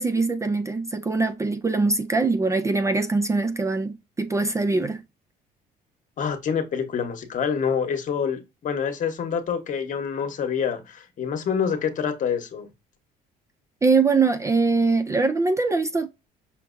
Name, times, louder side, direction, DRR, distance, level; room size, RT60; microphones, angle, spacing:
voice 1, 0.0-5.0 13.8-16.1, right 3 dB, 20° right, 0.3 m, -22 dB
voice 2, 6.2-12.7, left 7 dB, 50° left, 1.0 m, -27 dB
5.8 x 2.6 x 2.5 m
cardioid pair, 110°, 17 cm